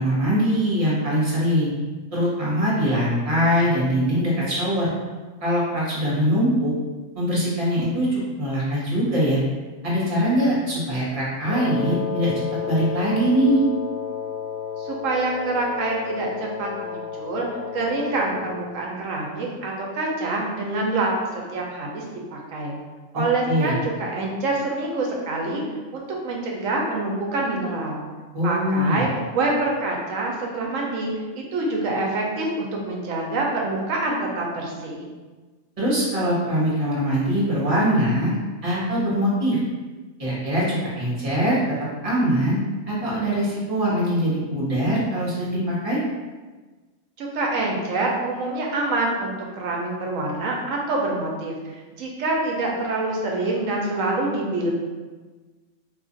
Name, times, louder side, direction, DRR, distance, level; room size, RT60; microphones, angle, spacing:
voice 1, 0.0-1.7 2.1-4.9 5.4-6.7 7.1-9.4 9.8-13.6 23.5-23.8 28.3-29.0 35.8-38.3 38.6-39.6 40.2-41.6 42.0-42.6 42.9-46.0, equal, 30° right, -7 dB, 1.1 m, -22 dB
Wind instrument woodwind instrument, 11.5-18.8, left 7 dB, 85° left, 1.0 m, -32 dB
voice 2, 14.8-17.5 17.7-21.1 21.5-22.0 22.3-22.7 23.1-25.6 25.9-28.0 28.4-31.1 31.3-35.0 47.2-51.5 52.0-54.7, right 2 dB, 75° right, -1 dB, 1.0 m, -26 dB
2.8 x 2.4 x 3.8 m, 1.3 s
omnidirectional pair, 1.4 m